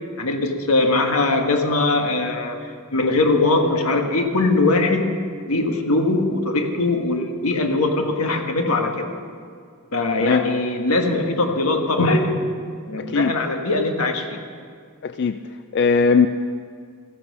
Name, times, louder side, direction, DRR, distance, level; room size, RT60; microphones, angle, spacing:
voice 1, 0.2-5.1 5.5-9.1 9.9-12.4 12.9-14.4, left 2 dB, 85° left, 4 dB, 1.4 m, -21 dB
voice 2, 13.0-13.3 15.0-16.3, left 5 dB, 50° left, 10 dB, 0.3 m, -19 dB
14.0 x 10.5 x 6.2 m, 2.1 s
head